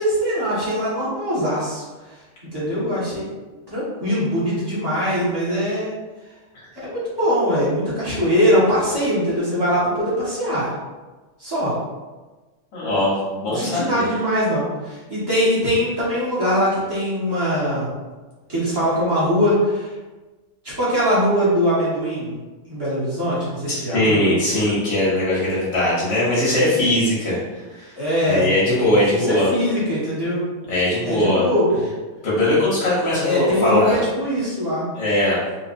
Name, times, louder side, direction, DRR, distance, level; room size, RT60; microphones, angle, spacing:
voice 1, 0.0-1.8 2.4-3.3 3.7-5.9 6.7-10.7 11.4-11.7 13.5-17.9 18.5-19.9 20.6-22.3 22.7-24.2 28.0-28.5 29.1-30.4 31.0-31.8 33.2-34.8, equal, 15° right, -10 dB, 1.3 m, -21 dB
voice 2, 12.7-14.1 23.7-27.4 27.7-27.9 28.2-29.5 30.7-31.4 32.2-33.9 35.0-35.4, left 1 dB, 85° left, -7 dB, 1.7 m, -20 dB
3.9 x 2.9 x 2.6 m, 1.2 s
omnidirectional pair, 1.8 m